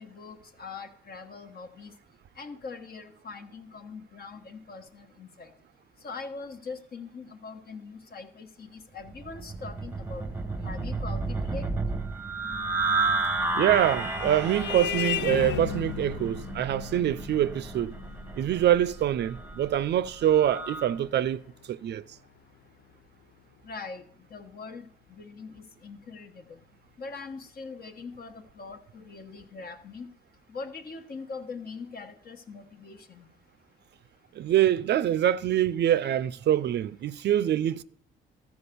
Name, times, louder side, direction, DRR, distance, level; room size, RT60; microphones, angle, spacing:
voice 1, 0.0-1.9 2.4-5.5 6.0-10.2 10.6-11.6 23.6-24.0 24.3-26.4 27.0-30.1 30.5-33.3, left 4 dB, 50° left, 1.3 m, -42 dB
sound 1, 9.1-20.9, right 3 dB, 10° right, 0.9 m, -32 dB
Vehicle horn car horn honking, 13.1-22.1, left 12 dB, 65° left, 0.4 m, -37 dB
voice 2, 13.5-17.9 18.4-21.4 21.7-22.0 34.4-37.8, right 11 dB, 60° right, 0.4 m, -25 dB
13.5 x 4.7 x 6.9 m
cardioid pair, 90°, 20 cm